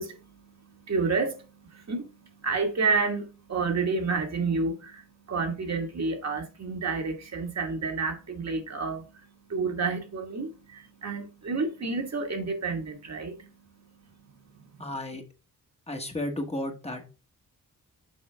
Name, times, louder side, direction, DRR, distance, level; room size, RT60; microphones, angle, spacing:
voice 1, 0.0-2.1 2.4-9.0 9.5-13.5, right 4 dB, 55° right, 1.6 m, -30 dB
voice 2, 14.8-15.2 15.9-17.1, left 1 dB, 20° left, 1.2 m, -33 dB
6.3 x 5.4 x 3.3 m
wide cardioid pair, 140°, 33 cm